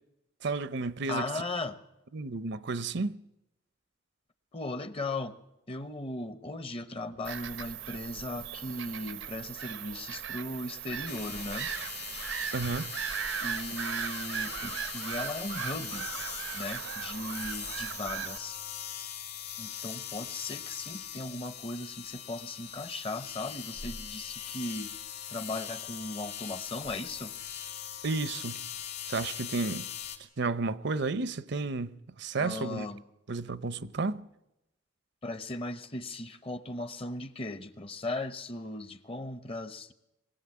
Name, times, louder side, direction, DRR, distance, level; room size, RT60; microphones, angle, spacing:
voice 1, 0.4-1.3 2.1-3.2 12.5-12.9 28.0-28.6 29.1-29.9 30.4-32.9 33.3-34.3, right 3 dB, 65° right, 0.7 m, -32 dB
voice 2, 1.1-1.8 4.5-5.4 5.7-11.7 13.4-16.1 16.5-18.6 19.6-24.9 25.3-27.4 32.4-33.0 35.2-39.9, left 2 dB, 30° left, 0.9 m, -37 dB
Bird vocalization bird call bird song / Gull seagull, 7.2-18.4, right 8 dB, 90° right, 0.9 m, -38 dB
sound 1, 11.1-30.2, left 9 dB, 60° left, 3.1 m, -41 dB
22.0 x 16.0 x 8.6 m
head